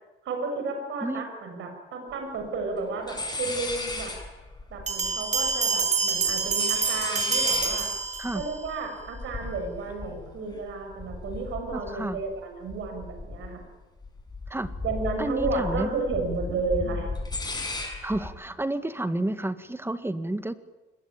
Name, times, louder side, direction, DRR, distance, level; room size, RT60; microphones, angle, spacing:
voice 1, 0.2-4.1 4.7-7.9 8.3-13.6 14.8-17.1, right 3 dB, 75° right, 5 dB, 7.5 m, -32 dB
sound 1, 2.1-2.2 2.4-2.8 3.1-5.8 6.1-12.4 12.7-13.7 14.0-18.3, left 3 dB, 20° left, 6.9 m, -36 dB
Bell, 4.9-8.6, right 4 dB, 35° right, 5.2 m, -26 dB
voice 2, 11.7-12.2 14.5-14.7 15.2-16.0 18.0-20.6, right 1 dB, 10° right, 11 dB, 1.8 m, -30 dB
25.5 x 21.5 x 9.1 m, 1.1 s
cardioid pair, 90°, 20 cm